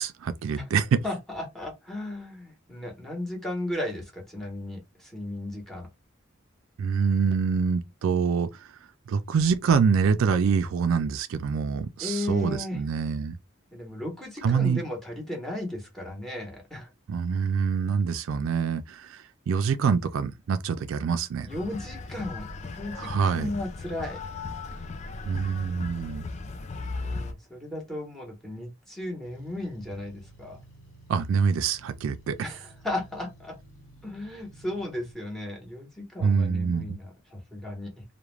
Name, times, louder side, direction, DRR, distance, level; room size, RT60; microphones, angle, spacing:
voice 1, 0.0-1.0 6.8-8.5 9.1-13.4 14.4-14.8 17.1-21.5 23.0-23.5 25.3-26.3 31.1-32.4 36.2-37.0, right 6 dB, 80° right, 0.3 m, -25 dB
voice 2, 1.0-5.9 12.0-12.8 13.7-16.9 21.4-24.2 27.0-30.6 32.4-33.6 34.0-38.0, left 1 dB, ahead, 1.0 m, -35 dB
sound 1, 21.5-27.3, left 3 dB, 35° left, 0.3 m, -37 dB
sound 2, 29.2-35.1, right 1 dB, 80° left, 0.9 m, -53 dB
2.4 x 2.1 x 3.0 m
head